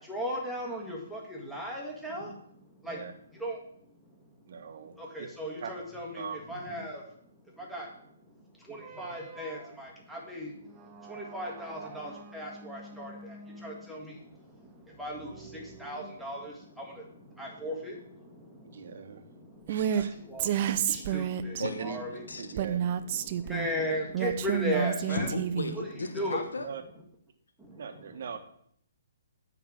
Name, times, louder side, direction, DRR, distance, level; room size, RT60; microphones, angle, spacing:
voice 1, 0.1-1.2 1.5-2.3 2.8-3.0 3.4-3.6 5.1-7.0 7.7-7.9 9.0-10.5 11.1-13.1 13.6-14.0 15.0-15.2 15.8-16.5 17.4-17.9 20.3-20.5 20.9-22.2 23.5-25.3 25.7-25.9 26.1-26.4, equal, ahead, -3 dB, 1.7 m, -35 dB
voice 2, 4.5-5.3 5.6-5.7 6.1-6.4 18.6-19.3 19.7-20.2 20.7-21.2 21.6-22.0 22.4-22.8 26.5-26.8 27.8-28.4, right 7 dB, 60° right, 7 dB, 1.0 m, -40 dB
sound 1, 8.8-16.6, right 3 dB, 15° right, 1.0 m, -49 dB
Female speech woman speaking, 19.7-20.0 20.4-21.7 22.6-23.7 24.1-25.8, right 9 dB, 40° right, 0.5 m, -29 dB
voice 3, 25.1-26.7, left 3 dB, 80° left, 7 dB, 0.9 m, -34 dB
8.9 x 3.9 x 6.2 m, 0.67 s
hypercardioid pair, 135°, 0 cm